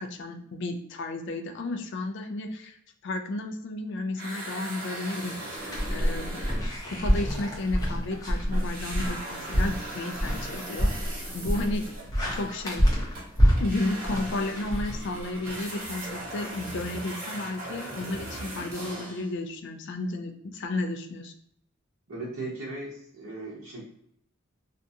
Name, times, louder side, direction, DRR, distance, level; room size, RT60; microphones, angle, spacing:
voice 1, 0.0-2.8 3.0-6.4 6.8-11.9 12.3-12.9 13.6-21.3, left 2 dB, 60° left, 6 dB, 0.4 m, -33 dB
sound 1, 4.1-8.2 8.5-19.3, right 1 dB, 50° right, 1.0 m, -39 dB
sound 2, 5.7-15.5, equal, 15° left, 0.7 m, -27 dB
voice 2, 22.1-23.8, right 2 dB, 80° right, -6 dB, 0.8 m, -37 dB
2.5 x 2.2 x 2.7 m, 0.72 s
head